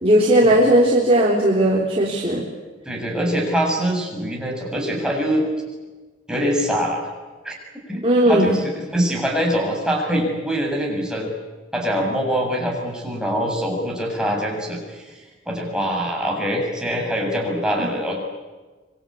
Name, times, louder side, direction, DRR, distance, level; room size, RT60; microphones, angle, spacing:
voice 1, 0.0-2.4 8.0-8.5, right 1 dB, 30° right, -3 dB, 3.7 m, -16 dB
voice 2, 2.9-5.5 6.3-7.1 7.4-7.5 7.9-11.3 11.7-18.2, equal, 5° right, -1 dB, 6.8 m, -24 dB
26.5 x 23.5 x 8.7 m, 1.3 s
head